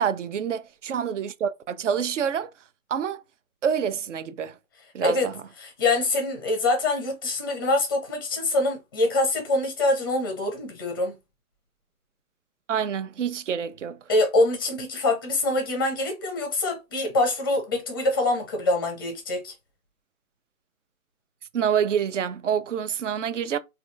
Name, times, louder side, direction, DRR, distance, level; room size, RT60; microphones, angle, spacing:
voice 1, 0.0-2.5 2.9-3.2 3.6-4.6 4.9-5.4 12.7-14.0 21.5-23.6, right 8 dB, 55° right, 0.5 m, -27 dB
voice 2, 5.6-11.1 14.1-19.5, left 2 dB, 15° left, 0.5 m, -24 dB
3.2 x 2.3 x 2.6 m
hypercardioid pair, 145°, 44 cm